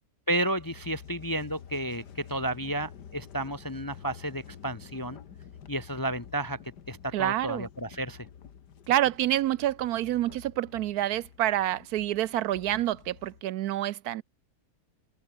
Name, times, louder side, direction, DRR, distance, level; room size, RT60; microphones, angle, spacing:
voice 1, 0.3-5.2 5.7-6.6 6.9-8.3, right 1 dB, 20° left, 0.6 m, -32 dB
sound 1, 0.6-13.4, left 8 dB, 85° left, 2.1 m, -49 dB
voice 2, 7.1-7.7 8.9-14.2, right 13 dB, 75° right, 1.0 m, -27 dB
omnidirectional pair, 1.8 m